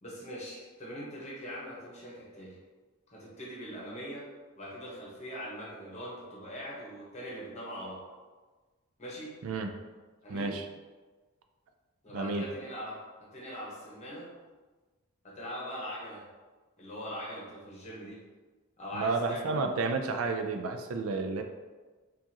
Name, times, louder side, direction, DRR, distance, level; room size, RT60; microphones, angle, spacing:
voice 1, 0.0-2.6 3.1-4.2 4.6-8.0 9.0-9.3 10.2-10.6 12.0-14.3 15.2-16.2 16.8-18.2 18.8-19.7, equal, 35° left, -5 dB, 1.1 m, -41 dB
voice 2, 10.3-10.6 12.1-12.4 18.9-21.4, right 3 dB, 90° right, 5 dB, 0.4 m, -31 dB
4.7 x 2.5 x 2.8 m, 1.3 s
head